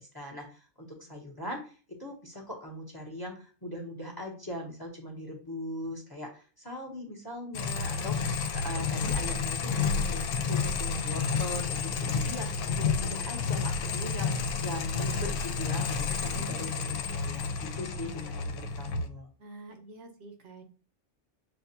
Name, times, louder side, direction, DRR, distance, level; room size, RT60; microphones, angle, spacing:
voice 1, 0.0-19.3, equal, 20° left, 1 dB, 0.8 m, -40 dB
sound 1, 7.5-19.1, left 5 dB, 85° left, 0.9 m, -30 dB
voice 2, 16.2-16.8 19.4-20.6, right 1 dB, 70° right, 3 dB, 1.2 m, -48 dB
6.5 x 2.3 x 2.7 m, 0.39 s
omnidirectional pair, 1.3 m